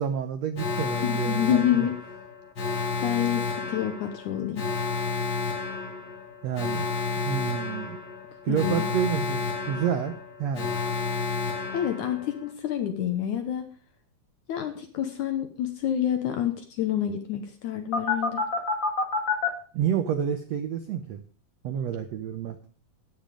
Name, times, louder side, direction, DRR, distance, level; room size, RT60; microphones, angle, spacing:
voice 1, 0.0-1.9 6.4-6.9 7.3-8.0 8.4-10.7 19.7-21.2 21.6-22.6, right 8 dB, 75° right, 8 dB, 1.5 m, -29 dB
Alarm, 0.6-12.5 17.9-19.5, left 4 dB, 40° left, 2.0 m, -30 dB
voice 2, 1.0-2.0 2.7-4.6 8.5-8.9 11.7-13.6 14.5-18.4, left 10 dB, 70° left, 6 dB, 2.2 m, -28 dB
12.5 x 9.7 x 5.1 m, 0.43 s
omnidirectional pair, 4.2 m